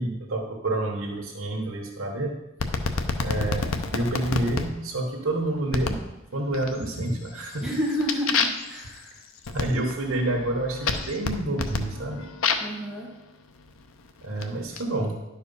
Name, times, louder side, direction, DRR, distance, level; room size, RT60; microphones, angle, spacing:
voice 1, 0.0-2.3 3.2-6.0 6.3-7.7 9.5-12.3 14.2-15.2, right 1 dB, 90° right, 0 dB, 1.2 m, -28 dB
sound 1, 2.6-4.7 5.7-6.1 6.5-7.0 7.4-12.8 13.6-14.8, left 4 dB, 85° left, 0.8 m, -29 dB
voice 2, 7.6-9.2 12.6-13.1, equal, ahead, -4 dB, 1.5 m, -30 dB
11.0 x 4.8 x 5.4 m, 0.96 s
head